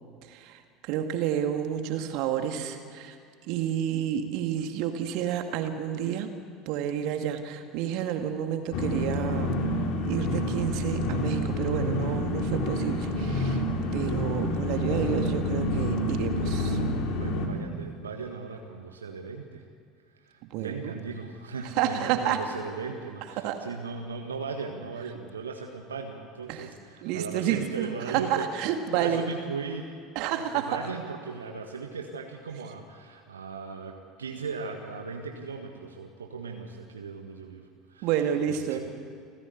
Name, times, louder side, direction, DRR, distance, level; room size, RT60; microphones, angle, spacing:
voice 1, 0.2-3.2 3.4-6.3 6.7-9.6 10.1-13.6 13.9-16.8 20.5-21.0 21.8-22.4 23.4-23.6 26.5-26.7 27.0-29.2 30.2-30.7 38.0-38.8, right 9 dB, 55° right, 6 dB, 2.1 m, -30 dB
sound 1, 8.7-17.5, left 1 dB, 55° left, 3.0 m, -28 dB
voice 2, 17.1-19.6 20.2-28.5 28.9-29.9 30.3-37.6 37.9-38.8, right 5 dB, 75° right, 3 dB, 1.6 m, -37 dB
29.0 x 15.5 x 8.3 m, 2.2 s
figure-of-eight pair, 70°, 0 cm